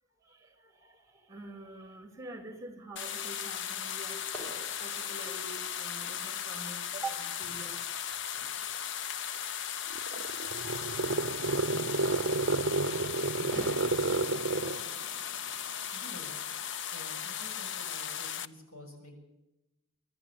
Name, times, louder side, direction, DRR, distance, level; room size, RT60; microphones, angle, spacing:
voice 1, 0.2-4.2 4.8-7.9, right 2 dB, 15° right, 7 dB, 3.0 m, -45 dB
sound 1, 3.0-18.5, left 9 dB, 60° left, 0.7 m, -37 dB
Fireworks, 3.6-17.8, right 1 dB, 5° left, 5.4 m, -52 dB
sound 2, 9.9-14.9, right 3 dB, 60° right, 0.6 m, -30 dB
voice 2, 13.4-13.8 14.5-14.8 15.9-16.3 16.9-19.2, left 1 dB, 85° left, 4 dB, 6.9 m, -50 dB
24.5 x 12.0 x 8.7 m, 0.95 s
head